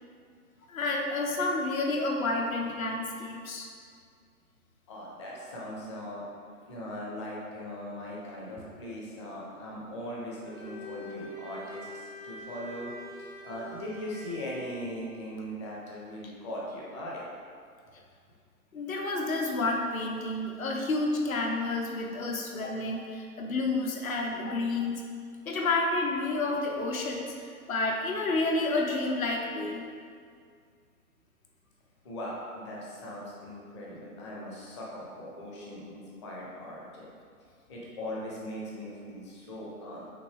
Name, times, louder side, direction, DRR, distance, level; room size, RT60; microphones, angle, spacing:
voice 1, 0.7-3.7 18.7-25.0 25.5-29.8, left 2 dB, 60° left, 1 dB, 0.8 m, -30 dB
voice 2, 4.9-17.3 32.0-37.1 37.7-40.1, equal, 20° left, -4 dB, 0.6 m, -40 dB
Bowed string instrument, 10.3-14.8, left 1 dB, 80° left, 1.4 m, -44 dB
5.9 x 2.7 x 3.3 m, 2.2 s
figure-of-eight pair, 125°, 46 cm